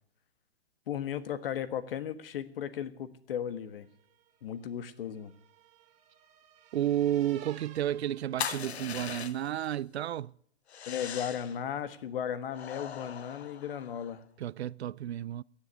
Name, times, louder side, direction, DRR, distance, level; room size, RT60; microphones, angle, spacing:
voice 1, 0.9-3.9 4.4-5.3 10.9-14.2, left 9 dB, 60° left, 1.5 m, -36 dB
sound 1, 3.9-9.3, right 9 dB, 20° right, 1.5 m, -56 dB
voice 2, 6.7-10.3 14.4-15.4, right 12 dB, 80° right, 0.5 m, -31 dB
sound 2, 8.4-9.7 10.7-11.6 12.5-14.2, left 8 dB, 80° left, 1.0 m, -39 dB
16.5 x 7.4 x 9.3 m
hypercardioid pair, 140°, 32 cm